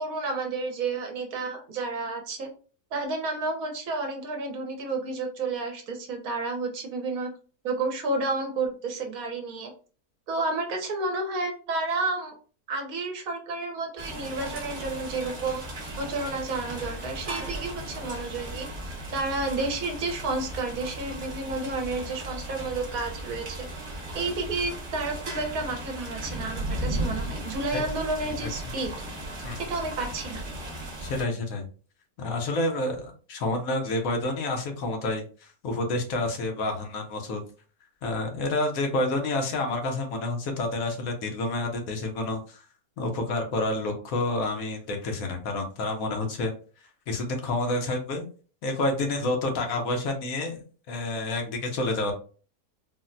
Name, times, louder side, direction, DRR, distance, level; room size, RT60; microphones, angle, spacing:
voice 1, 0.0-2.5 2.9-7.3 7.6-9.7 10.3-12.3 12.7-15.6 16.0-23.7 24.1-28.9 29.6-30.5, right 3 dB, 70° right, 3 dB, 1.1 m, -31 dB
sound 1, 14.0-31.2, right 1 dB, 35° right, 1.0 m, -36 dB
sound 2, 16.8-24.7, right 3 dB, 45° left, 1.4 m, -46 dB
voice 2, 31.0-31.6 32.2-37.4 38.0-42.6 43.0-46.5 47.1-48.3 48.6-52.1, left 2 dB, 70° left, 3 dB, 1.1 m, -29 dB
4.0 x 2.0 x 2.5 m, 0.39 s
omnidirectional pair, 1.6 m